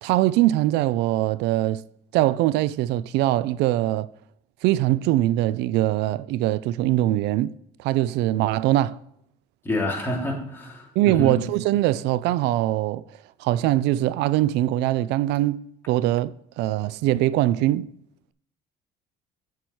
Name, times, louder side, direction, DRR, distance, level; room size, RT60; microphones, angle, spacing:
voice 1, 0.0-1.8 2.1-4.1 4.6-7.5 7.8-9.0 11.0-13.0 13.4-15.6 15.9-17.9, right 15 dB, 85° right, 0.4 m, -22 dB
voice 2, 9.6-11.5, left 1 dB, 15° left, 3.0 m, -28 dB
7.8 x 7.2 x 4.5 m
cardioid pair, 110°, 17 cm